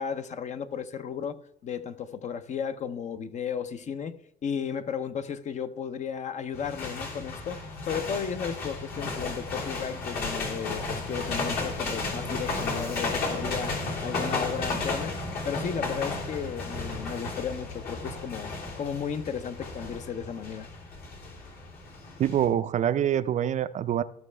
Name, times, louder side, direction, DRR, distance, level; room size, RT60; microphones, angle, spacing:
voice 1, 0.0-4.2 4.4-13.7 14.0-15.2 15.4-20.7, left 7 dB, 45° left, 0.6 m, -34 dB
sound 1, 6.5-22.5, left 3 dB, 65° left, 3.1 m, -33 dB
voice 2, 22.2-24.0, right 10 dB, 45° right, 0.4 m, -25 dB
14.5 x 6.0 x 3.3 m
cardioid pair, 110°, 17 cm